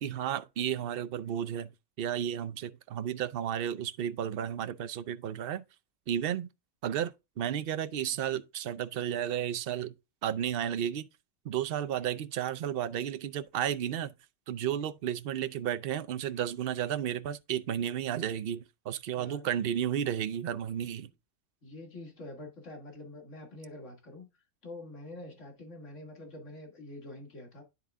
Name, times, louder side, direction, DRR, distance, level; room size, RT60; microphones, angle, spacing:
voice 1, 0.0-1.7 2.0-5.6 6.1-6.5 6.8-9.9 10.2-11.1 11.4-14.1 14.5-21.1, right 10 dB, 60° right, 0.7 m, -33 dB
voice 2, 19.1-19.5 21.6-24.3 24.6-27.6, left 2 dB, 65° left, 2.4 m, -46 dB
10.5 x 3.8 x 3.5 m
omnidirectional pair, 1.3 m